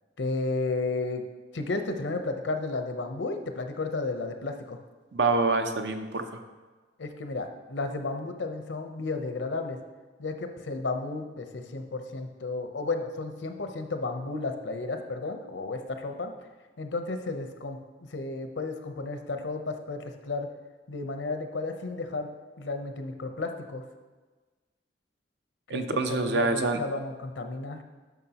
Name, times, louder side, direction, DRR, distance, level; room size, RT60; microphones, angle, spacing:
voice 1, 0.2-1.2 1.5-4.8 7.0-9.8 10.2-16.3 16.8-20.5 20.9-22.3 22.6-23.8 25.7-25.8 26.1-27.8, left 3 dB, 90° left, 6 dB, 0.7 m, -33 dB
voice 2, 5.1-6.4 25.7-26.8, right 3 dB, 65° right, 7 dB, 0.6 m, -26 dB
11.0 x 6.0 x 2.9 m, 1.3 s
head